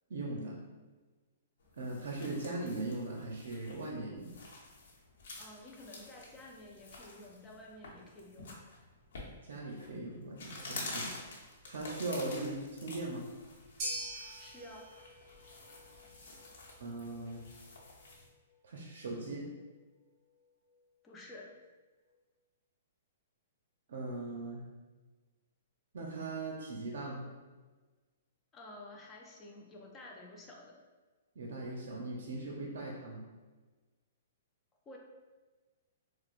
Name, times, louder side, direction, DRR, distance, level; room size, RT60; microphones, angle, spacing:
voice 1, 0.1-0.6 1.8-4.3 9.4-11.1 11.7-13.3 16.8-17.4 18.6-19.5 23.9-24.6 25.9-27.3 31.4-33.2, right 2 dB, 70° right, -1 dB, 0.6 m, -39 dB
sound 1, 1.6-18.3, left 2 dB, 70° left, 0.9 m, -49 dB
voice 2, 5.4-8.6 14.4-14.9 21.0-21.5 28.5-30.8 34.9-35.0, left 1 dB, 15° left, -2 dB, 0.5 m, -51 dB
sound 2, 13.8-22.2, right 1 dB, 25° right, 0.8 m, -47 dB
4.7 x 2.0 x 2.4 m, 1.3 s
hypercardioid pair, 160°, 0 cm